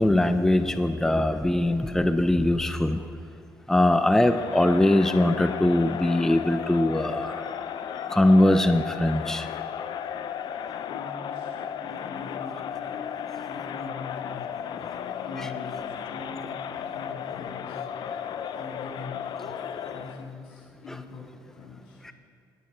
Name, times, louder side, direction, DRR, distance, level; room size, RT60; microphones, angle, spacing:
voice 1, 0.0-3.0 3.7-7.4 8.1-9.5 15.4-15.5 20.9-21.0 22.0-22.1, left 1 dB, 5° left, 9 dB, 0.5 m, -21 dB
Crowd, 4.1-20.3, left 8 dB, 60° left, 0.5 m, -35 dB
voice 2, 10.9-13.0 13.4-14.5 15.2-16.6 16.9-17.9 18.5-19.3 19.8-22.1, left 3 dB, 90° left, -3 dB, 3.3 m, -42 dB
15.0 x 9.5 x 4.4 m, 2.3 s
cardioid pair, 100°, 9 cm